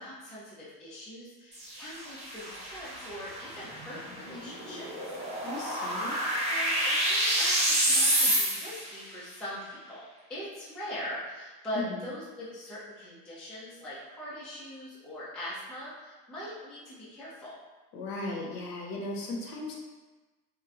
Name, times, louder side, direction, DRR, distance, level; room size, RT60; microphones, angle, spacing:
voice 1, 0.0-4.8 6.5-10.0 10.3-17.6, left 1 dB, ahead, -9 dB, 0.3 m, -41 dB
sound 1, 1.5-8.9, right 1 dB, 15° right, 0.9 m, -29 dB
voice 2, 5.4-6.2 11.7-12.1 17.9-19.7, left 2 dB, 45° left, -1 dB, 0.7 m, -36 dB
3.0 x 2.2 x 2.4 m, 1.2 s
hypercardioid pair, 90°, 49 cm